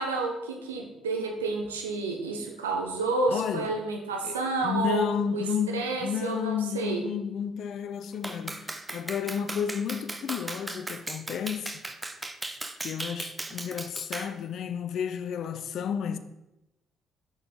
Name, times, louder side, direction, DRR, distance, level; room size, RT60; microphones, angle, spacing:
voice 1, 0.0-5.0 5.3-5.4 5.7-7.0, right 3 dB, 85° right, 0.8 m, -30 dB
voice 2, 3.3-3.7 4.2-11.8 12.8-16.2, left 8 dB, 60° left, 0.4 m, -32 dB
Clapping, 8.2-14.4, right 2 dB, 20° right, 0.6 m, -37 dB
6.0 x 5.3 x 3.9 m
figure-of-eight pair, 45°, 0 cm